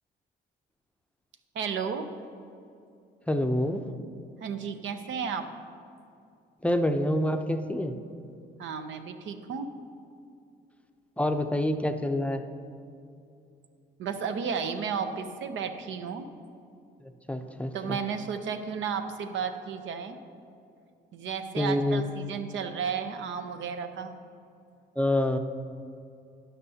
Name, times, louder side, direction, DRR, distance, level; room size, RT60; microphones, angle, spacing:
voice 1, 1.5-2.1 4.4-5.5 8.6-9.7 14.0-16.3 17.7-20.2 21.1-24.1, right 6 dB, 75° right, 8 dB, 0.7 m, -33 dB
voice 2, 3.3-3.9 6.6-7.9 11.2-12.4 17.3-18.0 21.6-22.0 25.0-25.4, left 1 dB, 5° left, 6 dB, 0.6 m, -27 dB
12.0 x 10.0 x 2.8 m, 2.5 s
cardioid pair, 90°, 20 cm